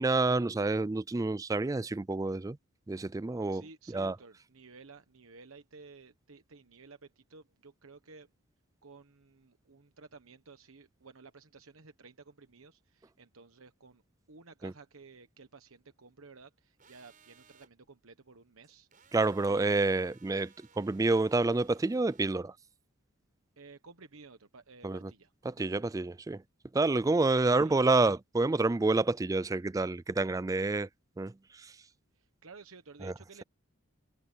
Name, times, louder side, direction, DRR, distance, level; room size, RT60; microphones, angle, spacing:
voice 1, 0.0-2.6 2.9-3.6 3.9-4.2 14.6-14.7 19.1-22.5 24.8-25.1 25.5-26.4 26.7-30.9 31.2-31.8 33.0-33.1, right 3 dB, 15° right, 0.3 m, -28 dB
voice 2, 3.5-8.3 8.8-14.0 14.3-18.9 23.6-25.8 27.3-27.9 32.1-33.4, right 4 dB, 80° right, 1.2 m, -54 dB
sound 1, 16.8-17.7 18.9-22.3, right 6 dB, 40° right, 7.3 m, -62 dB
head